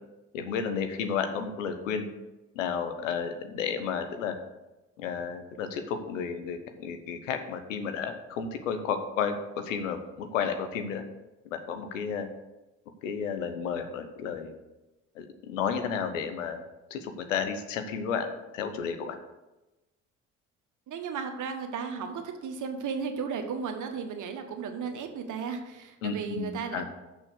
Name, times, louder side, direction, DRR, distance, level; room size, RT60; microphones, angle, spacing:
voice 1, 0.3-2.1 2.5-4.4 5.0-11.0 11.5-12.3 13.0-14.5 15.1-16.6 16.9-19.2 26.0-26.8, left 6 dB, 85° left, 7 dB, 0.9 m, -32 dB
voice 2, 20.9-26.8, right 6 dB, 50° right, 5 dB, 1.3 m, -35 dB
6.5 x 6.2 x 6.4 m, 1.0 s
hypercardioid pair, 50°, 38 cm